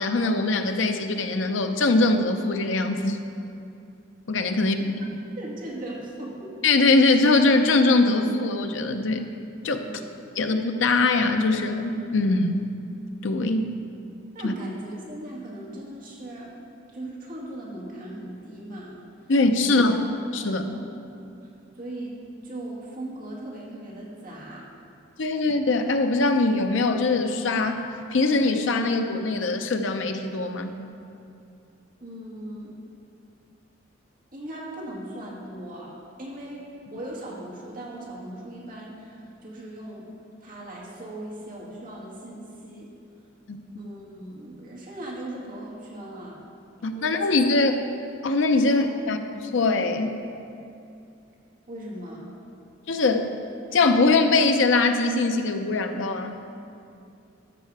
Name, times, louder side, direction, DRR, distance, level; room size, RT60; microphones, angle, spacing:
voice 1, 0.0-3.2 4.3-4.9 6.6-9.3 9.6-9.9 10.4-12.7 13.2-13.8 14.4-14.5 19.3-20.6 25.2-30.7 43.5-43.6 46.8-47.8 48.2-50.2 52.9-53.4 53.7-56.4, left 3 dB, 75° left, 6 dB, 0.6 m, -22 dB
voice 2, 5.4-6.5 9.8-10.2 14.3-16.5 16.9-18.9 19.6-19.9 20.6-20.9 21.4-22.1 22.4-24.7 32.0-32.7 34.3-35.9 36.2-40.1 40.4-42.9 43.8-46.4 47.0-47.4 48.6-48.8 51.7-52.3, right 1 dB, 45° right, -4 dB, 2.0 m, -38 dB
13.0 x 5.7 x 4.8 m, 2.6 s
head